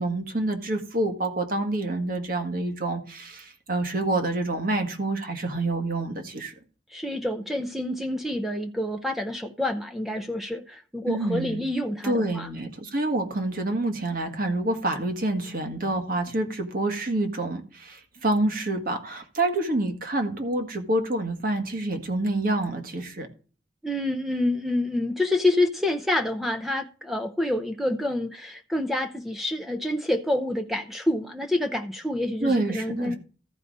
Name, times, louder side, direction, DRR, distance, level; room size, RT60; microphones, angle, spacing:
voice 1, 0.0-6.5 11.0-11.6 12.0-23.3 32.4-33.2, right 2 dB, 50° right, 1.6 m, -27 dB
voice 2, 6.9-12.5 23.8-33.1, left 1 dB, ahead, 0.6 m, -27 dB
14.0 x 4.9 x 3.9 m
head